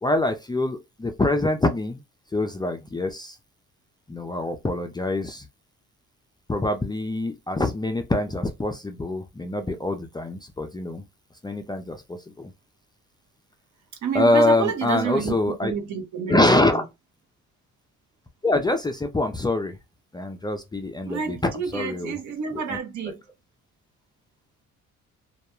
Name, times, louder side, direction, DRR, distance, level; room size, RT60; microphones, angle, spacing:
voice 1, 0.0-2.0 2.3-3.4 4.1-5.5 6.5-11.0 11.4-12.5 14.1-15.7 16.3-16.8 18.4-19.8 20.1-22.2 22.7-22.8, left 2 dB, 15° left, 0.3 m, -25 dB
voice 2, 14.0-15.4 15.6-16.8 21.0-23.2, right 6 dB, 65° right, 0.8 m, -29 dB
2.3 x 2.1 x 2.9 m
cardioid pair, 90°, 30 cm